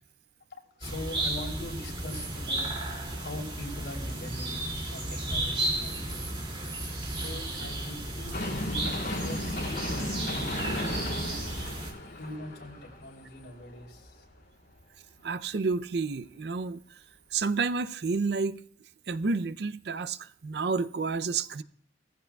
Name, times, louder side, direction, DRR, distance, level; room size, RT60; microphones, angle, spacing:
voice 1, 0.6-2.7 3.1-6.3 7.1-11.4 12.2-14.2, left 1 dB, 85° left, 3.2 m, -42 dB
sound 1, 0.8-11.9, right 1 dB, 30° right, 2.5 m, -34 dB
sound 2, 8.3-14.3 14.7-14.8, left 1 dB, 60° left, 2.8 m, -35 dB
voice 2, 15.2-16.8 17.3-18.6 19.1-20.2 20.4-21.6, right 4 dB, 65° right, 0.5 m, -30 dB
18.5 x 15.0 x 2.3 m
head